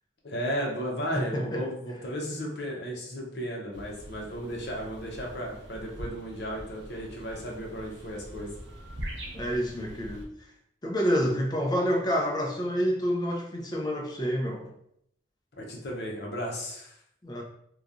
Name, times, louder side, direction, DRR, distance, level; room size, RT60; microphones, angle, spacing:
voice 1, 0.2-8.5 15.6-16.9, equal, 65° left, -1 dB, 0.7 m, -34 dB
voice 2, 1.1-1.7 9.3-10.5 10.8-14.7 17.2-17.4, equal, 25° left, 0 dB, 0.5 m, -28 dB
sound 1, 3.7-10.2, equal, 80° right, 0.6 m, -43 dB
3.0 x 2.2 x 2.5 m, 0.71 s
head